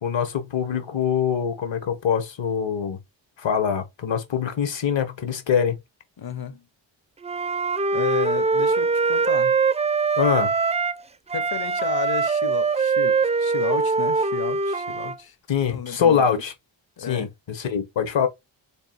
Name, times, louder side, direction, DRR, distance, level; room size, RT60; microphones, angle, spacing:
voice 1, 0.0-3.0 3.4-5.8 10.2-10.5 15.5-16.5 17.0-18.3, left 7 dB, 65° left, 1.4 m, -24 dB
voice 2, 6.2-6.7 7.9-9.6 11.3-15.4 15.6-16.2 17.0-17.3, left 8 dB, 50° left, 0.9 m, -33 dB
Wind instrument woodwind instrument, 7.2-11.0 11.3-15.2, right 4 dB, 15° right, 0.3 m, -22 dB
3.4 x 2.5 x 4.3 m
supercardioid pair, 45°, 48 cm